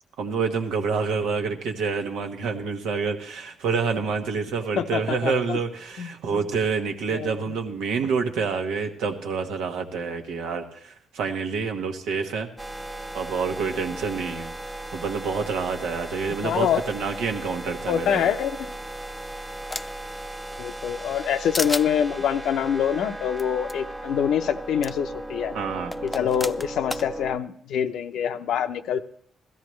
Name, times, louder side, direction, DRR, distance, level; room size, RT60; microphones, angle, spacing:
voice 1, 0.2-12.5 13.1-14.5 14.9-18.3 25.5-25.9, right 5 dB, 90° right, 4 dB, 1.2 m, -27 dB
voice 2, 4.8-5.6 6.0-6.1 7.1-7.6 16.4-16.8 17.9-18.6 20.6-25.5 26.0-29.0, left 8 dB, 75° left, 10 dB, 0.6 m, -25 dB
sound 1, 12.6-27.4, right 1 dB, 15° right, 0.9 m, -36 dB
sound 2, 18.7-20.1 20.5-21.3 21.5-21.9 23.4-23.5 23.7-23.8 24.8-24.9 25.9-27.1, left 2 dB, 20° left, 0.4 m, -32 dB
16.5 x 13.5 x 3.2 m, 0.62 s
cardioid pair, 90°, 0 cm